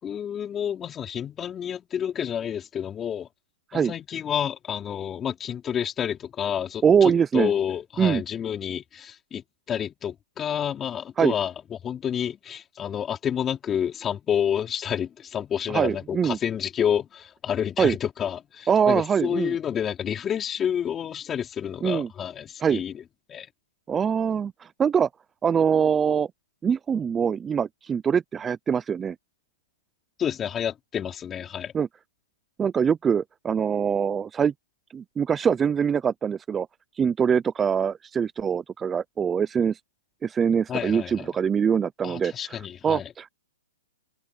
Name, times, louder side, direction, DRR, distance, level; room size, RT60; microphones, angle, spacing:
voice 1, 0.0-3.3 3.7-22.9 23.3-23.5 30.2-31.7 40.7-41.3 42.0-43.1, left 9 dB, 15° left, 4.7 m, -29 dB
voice 2, 6.8-7.5 8.0-8.2 11.2-11.3 15.7-16.4 17.8-17.9 18.7-19.5 21.8-22.1 22.6-22.8 23.9-25.1 25.4-26.3 26.6-29.2 31.7-31.9 32.6-34.5 34.9-36.7 36.9-39.8 40.2-43.3, right 7 dB, 15° right, 0.6 m, -23 dB
hypercardioid pair, 145°, 0 cm